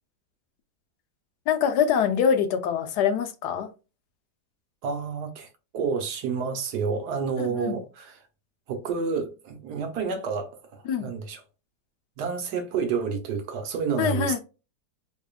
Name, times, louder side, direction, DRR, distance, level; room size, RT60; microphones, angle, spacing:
voice 1, 1.5-3.7 7.4-7.8 10.9-11.1 14.0-14.4, left 7 dB, 75° left, 1.2 m, -24 dB
voice 2, 4.8-5.5 5.7-8.2 8.7-11.4 12.2-14.4, right 5 dB, 75° right, 1.4 m, -29 dB
3.9 x 3.6 x 2.3 m
omnidirectional pair, 1.8 m